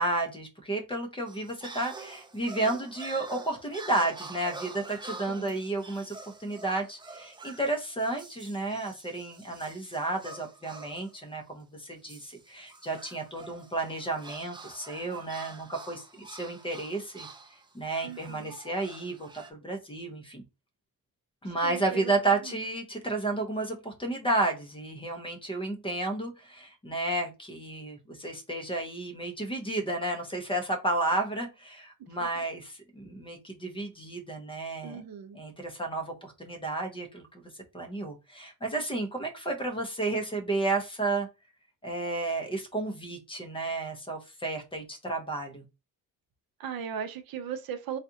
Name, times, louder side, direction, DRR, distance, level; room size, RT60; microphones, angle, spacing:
voice 1, 0.0-17.3 17.7-20.4 21.4-35.0 35.3-37.5 37.7-41.3 41.8-45.6, right 2 dB, 15° left, 0.8 m, -32 dB
sound 1, 1.3-11.2 12.1-19.5, right 3 dB, 10° right, 0.5 m, -46 dB
voice 2, 5.3-5.6 18.0-18.5 21.4-22.1 22.4-22.6 32.2-32.3 34.8-35.4 46.6-48.0, right 7 dB, 65° right, 0.7 m, -38 dB
4.1 x 2.5 x 2.7 m
cardioid pair, 125°, 38 cm